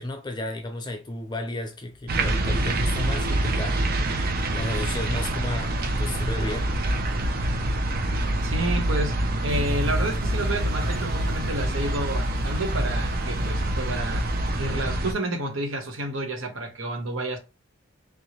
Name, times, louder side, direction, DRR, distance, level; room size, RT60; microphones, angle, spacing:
voice 1, 0.0-3.8 4.5-6.7, left 1 dB, 20° left, 0.5 m, -32 dB
sound 1, 2.1-15.1, right 1 dB, 45° right, 0.5 m, -26 dB
voice 2, 8.4-9.1 9.4-14.3 14.6-17.4, right 1 dB, 70° right, 1.0 m, -30 dB
sound 2, 9.5-14.8, left 1 dB, 5° left, 0.9 m, -43 dB
3.6 x 2.9 x 2.9 m
head